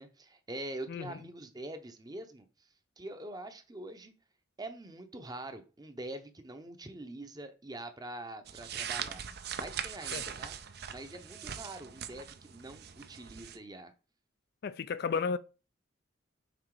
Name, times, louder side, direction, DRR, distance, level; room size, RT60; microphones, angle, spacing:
voice 1, 0.0-2.5 3.0-4.1 4.6-9.2 9.6-10.5 10.9-13.9, right 1 dB, 20° right, 0.7 m, -44 dB
voice 2, 0.9-1.2 10.1-10.2 14.6-15.4, left 5 dB, 55° left, 0.3 m, -33 dB
sound 1, 8.5-13.6, right 8 dB, 55° right, 0.6 m, -41 dB
6.0 x 3.9 x 4.7 m
head